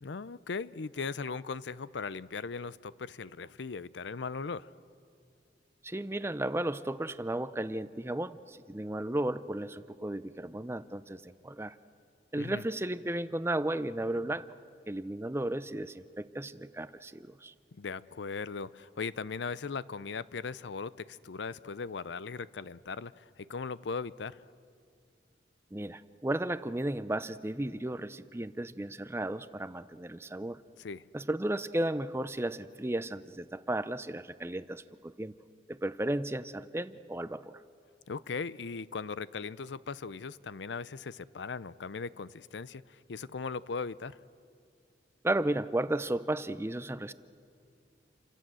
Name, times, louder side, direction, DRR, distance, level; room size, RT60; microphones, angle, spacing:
voice 1, 0.0-4.7 12.3-12.6 17.7-24.4 30.8-31.1 38.1-44.2, left 4 dB, 80° left, 0.6 m, -38 dB
voice 2, 5.8-11.7 12.3-14.5 14.9-17.5 25.7-30.6 31.1-35.3 35.7-37.6 45.2-47.1, right 1 dB, 15° right, 0.6 m, -34 dB
29.5 x 25.5 x 7.7 m
head